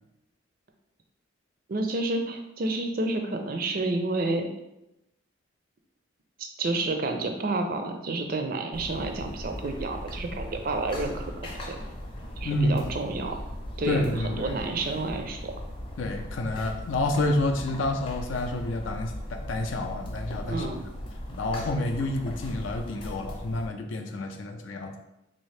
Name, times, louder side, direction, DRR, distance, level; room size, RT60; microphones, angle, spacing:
voice 1, 1.7-4.5 6.4-11.8 12.4-13.4 13.8-15.5 20.5-20.8, right 2 dB, 45° right, 4 dB, 0.4 m, -30 dB
sound 1, 8.7-23.7, equal, 25° left, 0.6 m, -38 dB
voice 2, 12.4-12.9 13.9-14.6 16.0-20.8 21.4-25.0, left 1 dB, 75° left, 4 dB, 0.5 m, -29 dB
3.5 x 2.7 x 3.2 m, 0.90 s
head